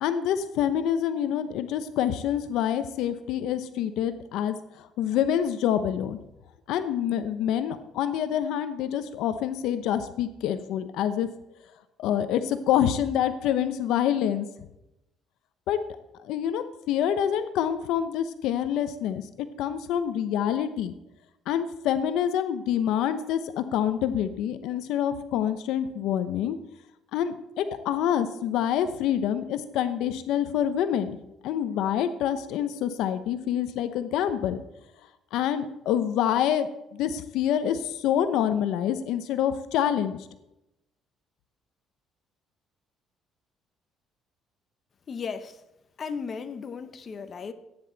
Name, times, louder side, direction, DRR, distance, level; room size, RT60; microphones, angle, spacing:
voice 1, 0.0-6.2 6.7-11.3 12.0-14.5 15.7-15.8 16.2-19.2 19.6-20.9 21.5-26.6 27.1-31.2 31.4-34.6 35.3-40.2, left 10 dB, 80° left, 0.8 m, -26 dB
voice 2, 45.1-45.6 46.0-47.5, left 5 dB, 40° left, 1.0 m, -35 dB
15.0 x 9.7 x 4.0 m
cardioid pair, 110°, 0 cm